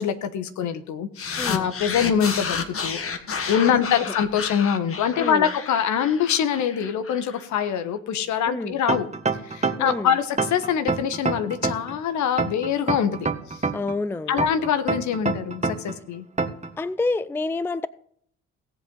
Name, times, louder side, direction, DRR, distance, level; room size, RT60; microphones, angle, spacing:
voice 1, 0.0-3.0 3.5-9.1 9.4-13.6 14.3-16.2, left 8 dB, 60° left, 10 dB, 1.3 m, -24 dB
sound 1, 1.2-7.7, left 5 dB, 40° left, 1.7 m, -31 dB
voice 2, 1.4-1.7 3.7-3.8 5.2-5.5 8.5-8.8 9.8-10.1 13.7-14.4 16.8-17.9, left 3 dB, 5° left, 18 dB, 0.5 m, -28 dB
sound 2, 8.9-10.0 10.4-12.0 12.4-14.0 14.4-16.0 16.4-16.7, right 4 dB, 20° right, 1.5 m, -25 dB
17.5 x 7.9 x 4.0 m, 0.64 s
hypercardioid pair, 45°, 33 cm